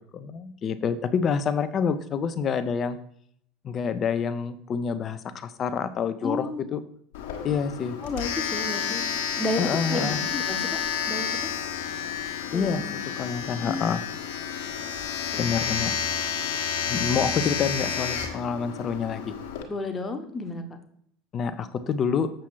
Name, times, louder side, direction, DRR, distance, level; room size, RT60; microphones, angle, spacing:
voice 1, 0.0-3.0 3.6-6.8 7.4-8.0 9.6-10.2 12.5-12.8 13.2-14.0 15.4-15.9 16.9-19.3 21.3-22.3, left 6 dB, 35° left, 12 dB, 0.7 m, -27 dB
voice 2, 6.2-6.6 8.0-9.0 9.4-9.6 9.9-10.8 11.1-11.5 12.5-13.0 13.6-13.9 15.3-15.5 19.7-20.6, left 2 dB, 20° left, 5 dB, 1.1 m, -32 dB
Domestic sounds home sounds, 7.1-19.6, left 7 dB, 60° left, 1.5 m, -30 dB
7.6 x 7.0 x 4.6 m, 0.68 s
figure-of-eight pair, 70°, 0 cm